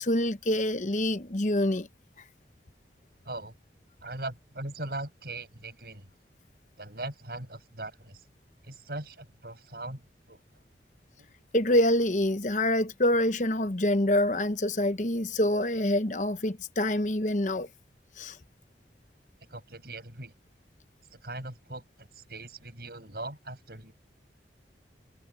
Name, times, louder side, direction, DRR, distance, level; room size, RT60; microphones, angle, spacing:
voice 1, 0.0-1.9 11.5-17.7 18.2-18.4, left 1 dB, 45° left, 1.0 m, -26 dB
voice 2, 4.0-6.1 6.8-8.2 8.6-10.0 10.3-10.4 11.2-11.3 19.5-20.3 21.1-23.9, right 2 dB, 60° right, 7.4 m, -40 dB
head